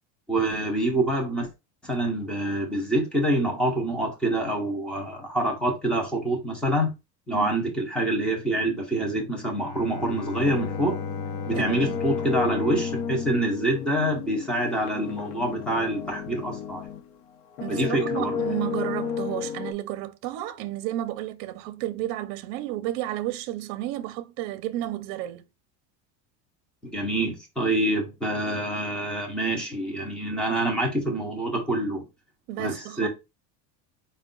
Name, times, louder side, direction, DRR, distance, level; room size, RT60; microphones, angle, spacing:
voice 1, 0.3-1.5 1.8-6.9 7.3-11.0 11.5-16.9 17.7-18.4 26.8-32.0 32.6-33.1, right 1 dB, ahead, 0.3 m, -26 dB
Bowed string instrument, 9.5-14.4, left 4 dB, 50° left, 0.6 m, -36 dB
sound 1, 10.4-17.1 17.5-19.7, left 7 dB, 75° left, 0.8 m, -33 dB
voice 2, 11.5-11.9 17.6-25.5 32.5-33.1, right 14 dB, 55° right, 0.6 m, -32 dB
4.5 x 2.2 x 3.7 m
cardioid pair, 175°, 48 cm